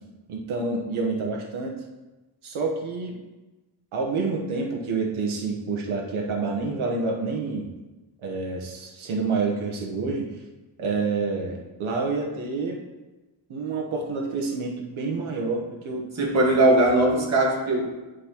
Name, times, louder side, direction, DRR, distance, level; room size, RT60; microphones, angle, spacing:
voice 1, 0.3-1.8 2.4-3.2 3.9-7.7 8.2-10.3 10.8-12.8 13.5-16.1, right 4 dB, 80° right, 0 dB, 1.1 m, -28 dB
voice 2, 16.2-17.8, right 1 dB, 35° right, -2 dB, 1.4 m, -19 dB
10.0 x 4.9 x 2.9 m, 1.1 s
wide cardioid pair, 160°, 48 cm